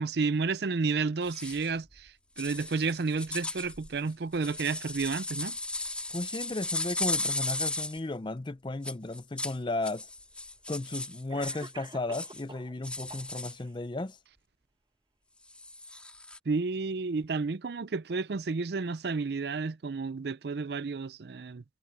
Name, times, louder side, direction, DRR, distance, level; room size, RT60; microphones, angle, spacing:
voice 1, 0.0-5.6 16.5-21.6, right 4 dB, 60° right, 0.5 m, -31 dB
sound 1, 1.2-1.7 2.4-8.0 8.8-9.6 9.8-11.7 12.1-12.4 12.8-13.6 15.5-16.4, left 2 dB, 5° left, 2.4 m, -36 dB
voice 2, 6.1-10.1 10.7-14.2, left 2 dB, 25° left, 0.5 m, -34 dB
Cough, 9.6-9.7 10.7-10.8 11.3-12.7 13.1-13.7, right 3 dB, 25° right, 1.1 m, -47 dB
head